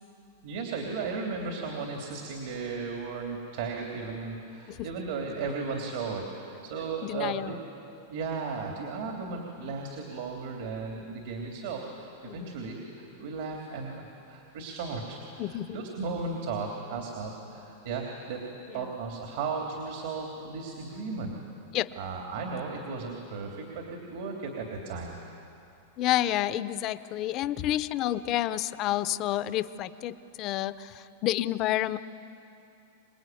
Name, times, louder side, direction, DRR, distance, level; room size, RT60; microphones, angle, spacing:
voice 1, 0.4-7.6 8.1-18.4 18.7-21.4 22.0-25.2, right 4 dB, 65° right, 1 dB, 3.2 m, -35 dB
voice 2, 7.0-7.6 12.3-12.5 15.4-15.8 18.7-18.9 21.7-21.9 26.0-32.0, left 13 dB, 35° left, 14 dB, 0.7 m, -29 dB
26.0 x 20.5 x 9.3 m, 2.8 s
supercardioid pair, 155°, 0 cm